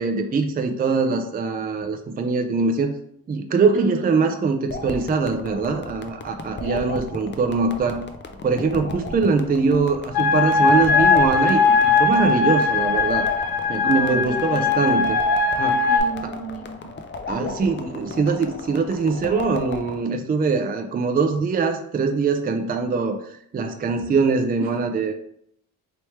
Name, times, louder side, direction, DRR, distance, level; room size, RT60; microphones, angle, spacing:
voice 1, 0.0-3.0 3.3-8.0 8.4-13.3 13.7-15.2 15.6-15.9 16.2-16.3 17.3-23.2 23.5-25.1, right 4 dB, 25° right, 6 dB, 0.4 m, -22 dB
voice 2, 3.7-4.3 6.6-6.9 13.8-14.9 15.9-16.9 24.6-24.8, right 5 dB, 75° right, 2 dB, 1.0 m, -33 dB
sound 1, 4.7-20.0, left 3 dB, 30° left, 0.5 m, -35 dB
sound 2, 10.1-16.0, left 4 dB, 75° left, 0.6 m, -19 dB
3.1 x 3.1 x 3.1 m, 0.69 s
cardioid pair, 65°, 37 cm